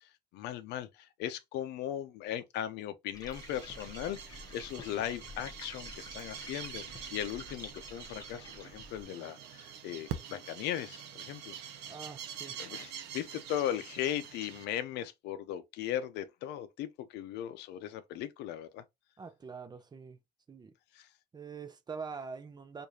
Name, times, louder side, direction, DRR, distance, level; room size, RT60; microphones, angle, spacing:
voice 1, 0.0-6.8 7.1-11.8 12.6-18.8 20.9-21.1, left 11 dB, 85° left, 0.5 m, -38 dB
sound 1, 3.1-9.0, left 2 dB, 20° left, 1.0 m, -49 dB
sound 2, 3.3-14.7, right 8 dB, 90° right, 0.7 m, -45 dB
voice 2, 11.9-12.6 19.2-20.2 20.5-20.7 21.3-22.9, right 5 dB, 25° right, 0.6 m, -44 dB
4.7 x 2.6 x 2.7 m
cardioid pair, 110°, 17 cm